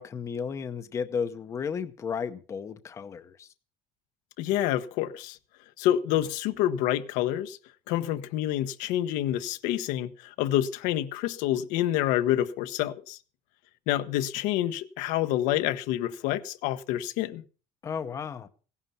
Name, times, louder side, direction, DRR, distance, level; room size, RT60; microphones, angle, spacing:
voice 1, 0.0-3.5 17.8-18.5, left 6 dB, 20° left, 0.7 m, -33 dB
voice 2, 4.4-5.4 5.8-7.6 7.9-13.2 13.9-17.4, left 12 dB, 75° left, 1.0 m, -27 dB
16.5 x 11.0 x 5.6 m
cardioid pair, 170°, 13 cm